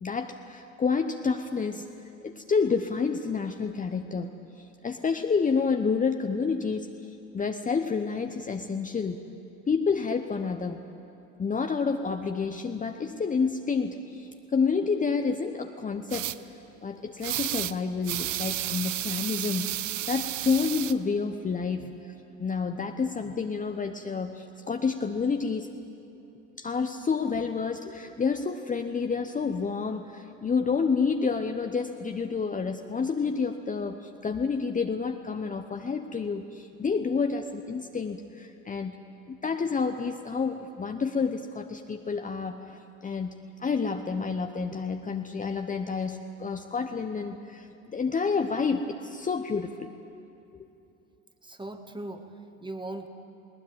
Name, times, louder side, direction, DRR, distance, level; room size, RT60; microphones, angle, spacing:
voice 1, 0.0-1.8 2.2-6.9 7.3-9.2 9.7-10.8 11.4-16.3 16.8-22.1 22.4-25.7 26.6-39.0 39.3-49.9 50.5-50.7, left 5 dB, 20° left, 5 dB, 0.9 m, -29 dB
sound 1, 16.1-16.4 17.2-17.7 18.0-20.9, right 15 dB, 75° right, 0.7 m, -32 dB
voice 2, 51.4-53.1, right 2 dB, 10° right, 6 dB, 1.9 m, -39 dB
20.5 x 19.0 x 9.0 m, 2.8 s
figure-of-eight pair, 60°, 38 cm